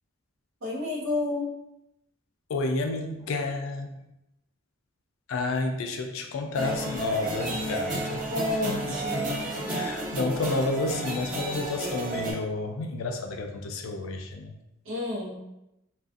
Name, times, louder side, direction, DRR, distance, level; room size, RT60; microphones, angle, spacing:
voice 1, 0.6-1.5 8.3-9.3 14.8-15.4, left 2 dB, 75° right, -3 dB, 0.7 m, -30 dB
voice 2, 2.5-4.0 5.3-8.3 8.6-8.7 9.1-14.5, left 3 dB, 75° left, 5 dB, 0.4 m, -31 dB
sound 1, 6.5-12.3, right 2 dB, 45° right, 0.7 m, -32 dB
2.4 x 2.3 x 2.4 m, 0.87 s
head